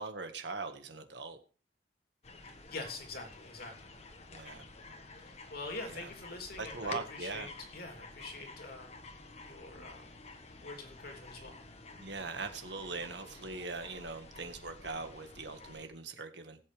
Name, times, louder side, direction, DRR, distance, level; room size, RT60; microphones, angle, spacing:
voice 1, 0.0-1.4 4.3-4.7 5.9-6.1 6.6-7.5 12.0-16.6, right 3 dB, 75° right, 7 dB, 1.7 m, -41 dB
sound 1, 2.2-15.9, left 3 dB, 40° left, 1.4 m, -51 dB
voice 2, 2.7-3.9 5.2-9.0 9.4-10.1 10.6-11.6, left 3 dB, 60° left, 3 dB, 3.0 m, -45 dB
19.0 x 8.3 x 3.4 m, 0.39 s
head